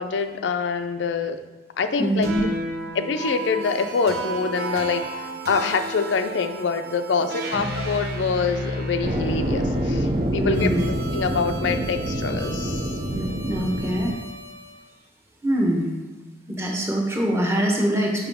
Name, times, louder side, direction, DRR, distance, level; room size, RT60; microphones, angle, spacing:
voice 1, 0.0-1.4 1.8-2.3 2.9-12.9, left 5 dB, 85° left, 8 dB, 0.4 m, -25 dB
voice 2, 2.0-2.4 7.5-7.6 10.4-10.9 13.1-14.1 15.4-15.9 16.5-18.3, right 1 dB, 15° right, 0 dB, 0.9 m, -24 dB
sound 1, 2.2-14.7, right 1 dB, 60° right, 1.0 m, -32 dB
sound 2, 9.0-14.1, right 1 dB, 35° right, 0.5 m, -27 dB
5.8 x 5.5 x 3.5 m, 1.1 s
head